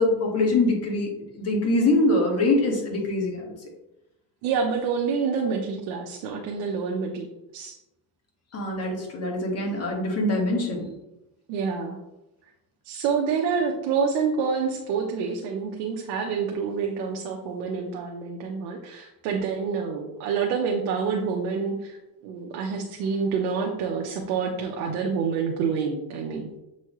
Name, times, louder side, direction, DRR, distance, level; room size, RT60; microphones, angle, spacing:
voice 1, 0.0-3.5 8.5-10.9, left 2 dB, 40° left, 0 dB, 1.7 m, -24 dB
voice 2, 4.4-7.3 7.5-7.7 11.5-12.0 12.8-22.0 22.2-26.6, right 5 dB, 85° right, 1 dB, 0.9 m, -27 dB
7.3 x 4.3 x 3.1 m, 0.94 s
cardioid pair, 125°, 39 cm